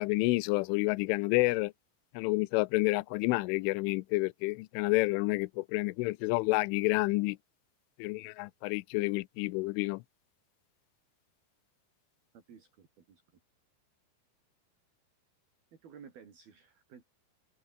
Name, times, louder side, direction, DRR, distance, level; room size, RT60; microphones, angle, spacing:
voice 1, 0.0-1.7 2.1-7.4 8.0-10.0, left 23 dB, 80° left, 3.0 m, -29 dB
voice 2, 12.3-13.2 15.7-17.0, right 7 dB, 50° right, 5.5 m, -54 dB
omnidirectional pair, 5.9 m